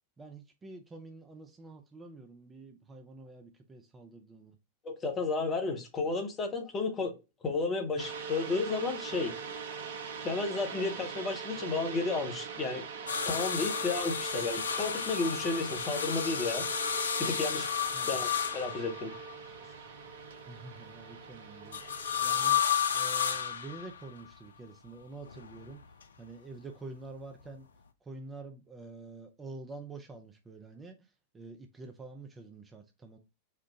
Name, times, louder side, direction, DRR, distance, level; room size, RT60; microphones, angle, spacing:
voice 1, 0.2-4.6 17.9-18.1 20.5-21.8 22.2-22.6 22.9-25.8 26.2-27.7 28.0-33.2, right 3 dB, 15° right, 0.7 m, -47 dB
voice 2, 4.8-7.1 7.4-9.4 9.7-9.8 10.2-12.8 13.2-16.7 17.2-17.7 18.1-19.1, left 3 dB, 25° left, 1.1 m, -32 dB
sound 1, 8.0-22.6, right 6 dB, 60° right, 0.6 m, -42 dB
sound 2, 13.1-19.3 21.7-24.2 25.3-26.0 27.5-27.6, left 8 dB, 70° left, 0.4 m, -32 dB
4.4 x 2.4 x 3.6 m
figure-of-eight pair, 90°, 0 cm